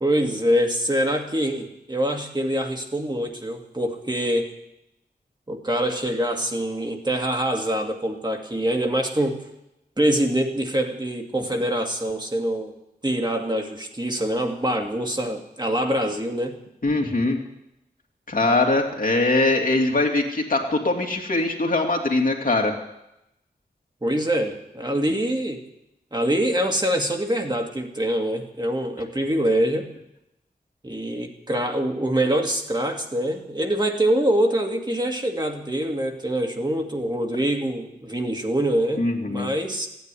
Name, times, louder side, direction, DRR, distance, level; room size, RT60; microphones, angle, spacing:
voice 1, 0.0-4.5 5.5-9.4 10.0-12.7 13.0-16.5 24.0-25.6 26.1-29.9 30.8-39.9, right 1 dB, 25° right, 2 dB, 2.1 m, -24 dB
voice 2, 16.8-17.4 18.3-22.7 39.0-39.5, left 2 dB, 55° left, 1 dB, 2.6 m, -22 dB
15.0 x 9.5 x 9.9 m, 0.86 s
wide cardioid pair, 75°, 17 cm